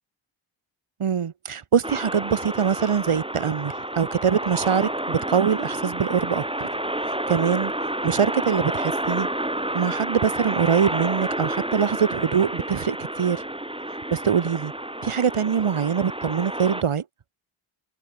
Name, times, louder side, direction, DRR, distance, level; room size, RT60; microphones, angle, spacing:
voice 1, 1.0-6.7 7.1-7.7 8.0-9.3 9.7-13.4 14.1-14.7 15.0-17.0, right 7 dB, 85° right, 7.0 m, -23 dB
sound 1, 1.8-16.8, right 1 dB, 10° right, 7.2 m, -30 dB
wide cardioid pair, 90°, 49 cm